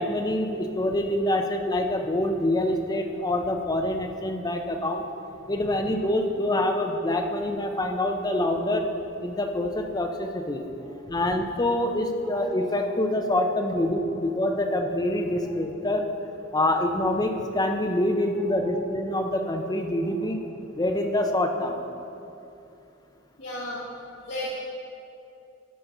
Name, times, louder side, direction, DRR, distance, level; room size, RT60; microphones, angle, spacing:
voice 1, 0.0-5.0 5.5-8.9 9.2-10.6 11.1-16.1 16.5-20.4 20.7-21.8, left 1 dB, 20° left, 4 dB, 0.6 m, -26 dB
voice 2, 23.4-23.8 24.2-24.5, left 1 dB, 65° left, -10 dB, 1.8 m, -33 dB
12.5 x 5.7 x 3.9 m, 2.7 s
head